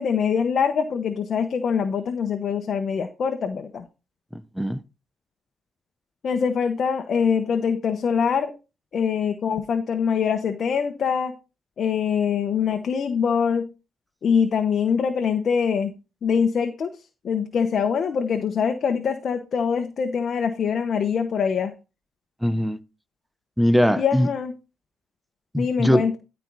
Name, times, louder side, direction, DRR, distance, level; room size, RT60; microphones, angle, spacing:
voice 1, 0.0-3.9 6.2-8.5 8.9-11.3 11.8-13.6 14.2-15.9 16.2-16.9 17.2-21.7 24.0-24.5 25.6-26.2, left 6 dB, 55° left, 1.0 m, -23 dB
voice 2, 4.3-4.8 22.4-22.8 23.6-24.3 25.5-26.1, equal, ahead, 0.7 m, -21 dB
13.0 x 4.5 x 4.0 m
cardioid pair, 90°, 0 cm